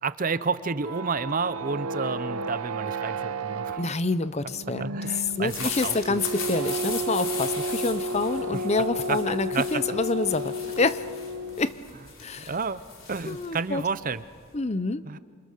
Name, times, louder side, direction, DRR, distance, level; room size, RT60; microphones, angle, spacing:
voice 1, 0.0-3.8 4.8-6.2 8.5-8.6 9.1-9.2 9.5-9.8 12.5-12.8 13.1-14.2 15.1-15.2, right 4 dB, 40° right, 14 dB, 0.6 m, -30 dB
sound 1, 0.6-11.8, right 1 dB, 90° right, 0.8 m, -32 dB
voice 2, 3.8-5.0 5.4-11.0 11.6-11.8 12.2-12.5 13.2-13.8 14.5-15.0, left 3 dB, 30° left, 14 dB, 0.7 m, -27 dB
sound 2, 5.2-14.5, left 6 dB, 65° left, 4.1 m, -39 dB
28.0 x 25.5 x 6.6 m, 2.1 s
head